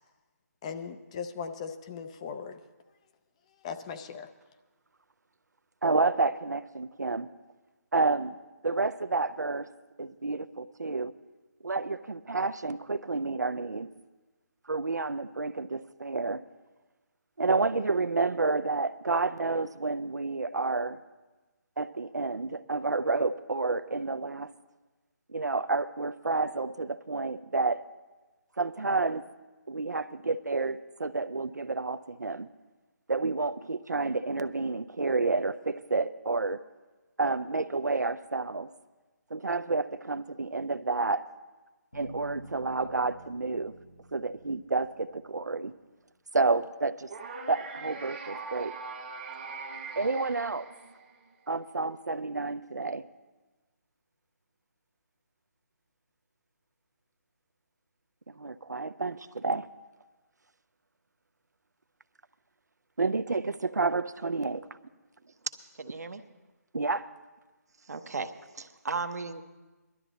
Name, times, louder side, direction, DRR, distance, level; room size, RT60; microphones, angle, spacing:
voice 1, 0.6-2.6 3.6-4.3, left 6 dB, 20° left, 8 dB, 0.5 m, -38 dB
voice 2, 5.8-7.3 7.9-8.4 8.6-9.7 10.0-11.1 11.6-13.9 14.7-16.4 17.4-21.0 21.8-24.5 25.3-27.8 28.6-29.2 29.7-32.5 33.1-36.6 37.2-38.7 39.3-41.2 41.9-43.7 44.1-45.7 46.3-47.1 47.5-48.7 50.0-50.7 51.5-53.0 58.4-59.7 63.0-64.6 66.7-67.1, right 3 dB, 85° right, 11 dB, 0.5 m, -30 dB
Bass guitar, 41.9-45.9, right 1 dB, 85° left, 3.0 m, -50 dB
sound 1, 47.1-51.3, right 4 dB, 35° right, 1.0 m, -41 dB
voice 3, 65.8-66.2 67.9-69.4, right 4 dB, 70° right, 9 dB, 0.9 m, -36 dB
19.0 x 12.0 x 4.0 m, 1.2 s
figure-of-eight pair, 155°, 9 cm